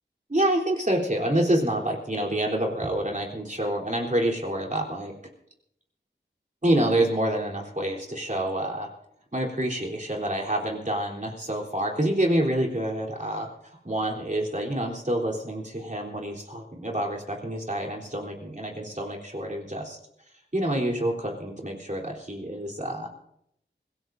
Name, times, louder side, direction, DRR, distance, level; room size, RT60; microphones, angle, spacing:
voice 1, 0.3-5.1 6.6-8.9 9.3-13.5 13.8-20.0 20.5-23.1, right 1 dB, 40° right, -1 dB, 3.7 m, -27 dB
26.0 x 17.0 x 2.7 m, 0.77 s
wide cardioid pair, 45°, 19 cm